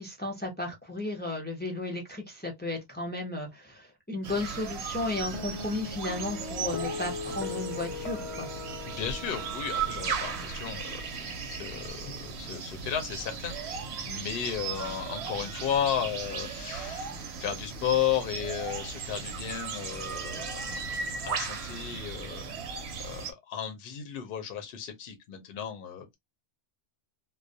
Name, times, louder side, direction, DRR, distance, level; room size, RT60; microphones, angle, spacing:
voice 1, 0.0-8.5, left 2 dB, 15° left, 0.3 m, -34 dB
sound 1, 4.2-23.3, right 6 dB, 70° right, 0.8 m, -37 dB
Guitar, 5.3-11.9, left 5 dB, 85° left, 1.0 m, -40 dB
voice 2, 8.9-17.1 17.4-20.6 21.2-22.4 23.0-26.1, left 9 dB, 60° left, 0.7 m, -34 dB
2.3 x 2.0 x 2.6 m
omnidirectional pair, 1.2 m